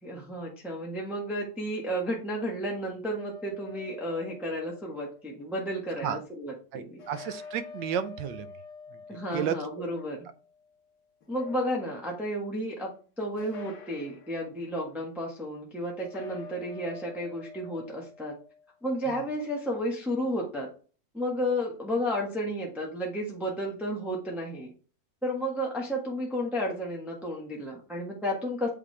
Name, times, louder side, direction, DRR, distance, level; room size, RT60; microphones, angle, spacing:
voice 1, 0.0-7.0 9.1-10.2 11.3-18.3 18.8-20.7 21.1-24.7 25.2-28.7, equal, ahead, -3 dB, 1.2 m, -32 dB
sound 1, 3.2-5.2 7.0-10.7 11.2-12.2 13.4-14.5 16.0-18.7, left 5 dB, 60° left, 1.6 m, -47 dB
voice 2, 6.7-8.6 9.3-9.6 19.1-19.2, right 8 dB, 80° right, 11 dB, 1.4 m, -32 dB
8.6 x 3.6 x 3.3 m, 0.38 s
omnidirectional pair, 2.0 m